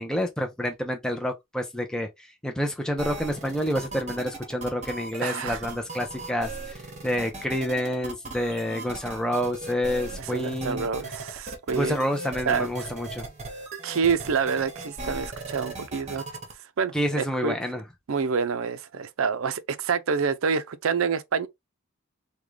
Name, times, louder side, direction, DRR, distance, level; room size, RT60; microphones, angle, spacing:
voice 1, 0.0-10.9 11.7-13.3 16.9-17.8, equal, 5° left, 0.5 m, -28 dB
sound 1, 3.0-16.5, right 2 dB, 30° right, 0.9 m, -38 dB
voice 2, 5.2-5.6 10.1-12.0 12.5-12.9 13.8-16.2 16.8-17.6 18.1-21.5, right 6 dB, 70° right, 0.5 m, -27 dB
3.6 x 2.3 x 3.1 m
head